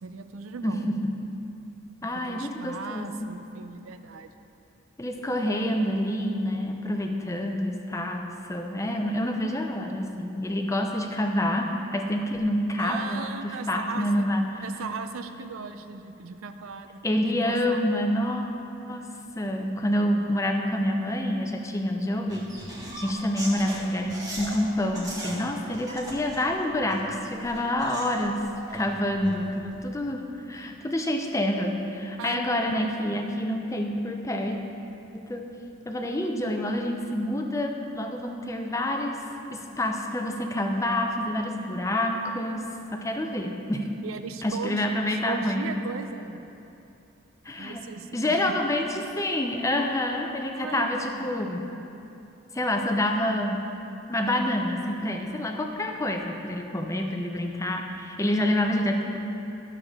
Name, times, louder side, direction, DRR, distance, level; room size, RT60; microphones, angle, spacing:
voice 1, 0.0-0.9 2.2-4.3 12.8-14.3 14.6-17.0 17.3-17.9 27.6-27.7 32.2-33.2 44.0-46.4 47.6-48.8 50.5-50.9 51.2-51.3, right 5 dB, 90° right, 8 dB, 0.5 m, -38 dB
voice 2, 0.6-0.9 2.0-3.3 5.0-14.6 17.0-18.5 18.9-19.0 19.4-22.5 23.0-28.4 28.7-34.6 35.1-35.4 35.9-39.2 39.5-42.6 42.9-43.9 44.4-45.6 47.4-47.8 48.1-51.7 52.5-53.8 54.1-59.2, left 1 dB, 15° left, 3 dB, 0.5 m, -27 dB
sound 1, 22.3-24.6 24.9-25.4 25.7-27.0 27.4-29.7, right 1 dB, 15° right, 1.4 m, -39 dB
11.5 x 6.8 x 3.6 m, 2.9 s
head